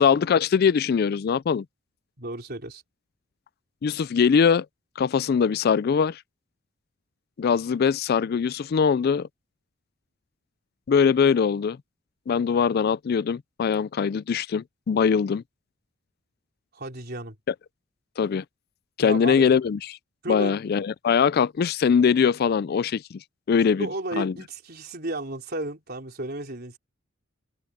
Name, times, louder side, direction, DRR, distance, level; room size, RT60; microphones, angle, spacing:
voice 1, 0.0-1.7 3.8-4.7 5.0-6.2 7.4-9.3 10.9-11.8 12.3-15.4 17.5-17.6 18.2-18.4 19.0-19.8 20.3-23.9 24.2-24.3, left 6 dB, 50° left, 0.3 m, -22 dB
voice 2, 2.2-2.8 16.7-17.4 19.0-19.5 20.2-20.6 23.8-26.8, right 2 dB, 50° right, 3.9 m, -33 dB
open air
head